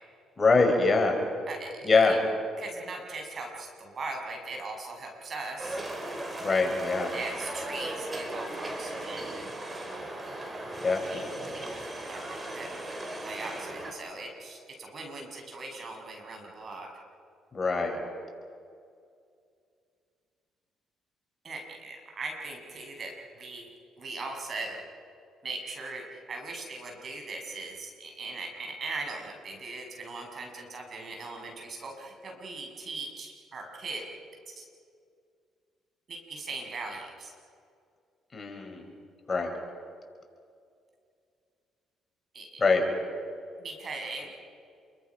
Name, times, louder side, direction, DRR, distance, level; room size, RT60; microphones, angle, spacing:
voice 1, 0.4-1.2 1.8-2.2 6.4-7.1 10.8-11.5 17.5-18.0 38.3-38.8 39.3-39.5 42.6-42.8, left 3 dB, 30° left, 3 dB, 5.4 m, -24 dB
voice 2, 1.5-2.2 2.6-5.8 7.1-9.5 11.0-13.0 13.2-16.9 21.4-23.7 24.0-24.8 25.4-34.0 34.6-34.7 36.1-37.3 42.3-42.6 43.6-44.3, right 3 dB, 50° right, 2 dB, 6.4 m, -40 dB
sound 1, 5.6-13.9, right 1 dB, 25° right, 5.1 m, -37 dB
28.5 x 23.0 x 6.0 m, 2.3 s
supercardioid pair, 60°, 0 cm